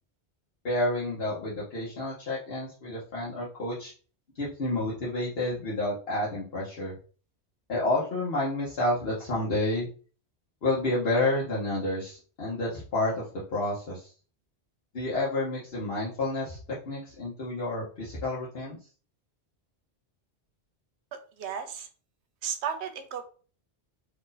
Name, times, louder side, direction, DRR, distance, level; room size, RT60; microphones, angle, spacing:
voice 1, 0.6-3.9 4.4-7.0 7.7-9.9 10.6-14.1 14.9-16.6 16.9-18.8, left 2 dB, 65° left, -7 dB, 1.2 m, -30 dB
voice 2, 21.1-21.9 22.4-23.2, right 7 dB, 85° right, 8 dB, 0.9 m, -34 dB
3.0 x 2.6 x 3.9 m, 0.40 s
omnidirectional pair, 1.1 m